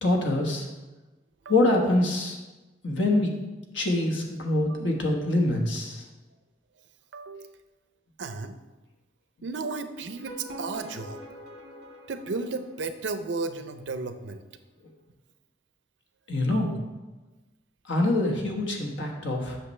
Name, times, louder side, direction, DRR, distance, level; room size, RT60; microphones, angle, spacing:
voice 1, 0.0-0.7 1.5-2.4 2.8-3.3 3.7-6.0 16.3-16.8 17.9-19.6, left 2 dB, 90° left, 1 dB, 1.3 m, -25 dB
voice 2, 7.1-7.6 8.2-8.6 9.4-11.2 12.1-14.4 16.5-16.8, right 3 dB, 75° right, 9 dB, 0.6 m, -34 dB
sound 1, 10.0-13.2, equal, 60° right, 1.3 m, -44 dB
8.1 x 5.9 x 3.2 m, 1.1 s
head